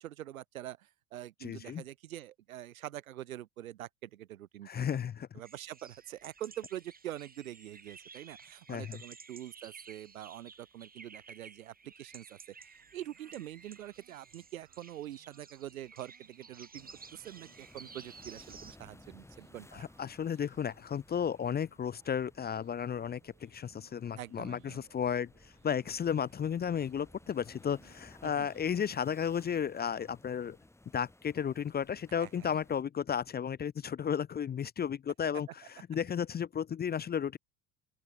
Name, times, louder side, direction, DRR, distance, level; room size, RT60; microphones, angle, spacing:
voice 1, 0.0-5.0 5.3-19.8 24.2-24.9 28.2-28.5 32.2-32.6, right 13 dB, 80° right, 2.3 m, -45 dB
voice 2, 1.4-1.8 4.6-5.3 8.7-9.0 19.7-30.6 30.9-37.4, left 8 dB, 25° left, 0.8 m, -34 dB
sound 1, 5.4-18.8, right 5 dB, 20° right, 5.1 m, -54 dB
sound 2, 12.7-30.0, right 40 dB or more, 60° right, 5.5 m, -68 dB
sound 3, 16.7-32.8, left 2 dB, 5° left, 2.7 m, -59 dB
open air
hypercardioid pair, 75°, 41 cm